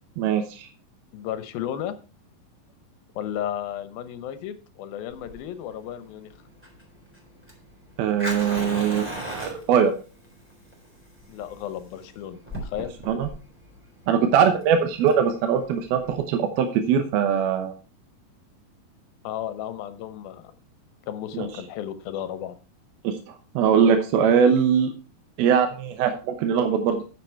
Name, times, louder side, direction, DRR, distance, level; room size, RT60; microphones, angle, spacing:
voice 1, 0.2-0.7 8.0-9.9 13.1-13.3 14.1-17.7 21.3-21.5 23.0-24.9 25.4-27.0, right 7 dB, 85° right, 6 dB, 2.9 m, -21 dB
voice 2, 1.1-2.0 3.2-6.3 11.3-12.9 19.2-20.5 21.1-22.6, left 10 dB, 80° left, 12 dB, 2.7 m, -33 dB
Fire, 5.1-16.2, equal, 5° right, 3.4 m, -38 dB
9.7 x 7.7 x 4.4 m, 0.34 s
omnidirectional pair, 4.2 m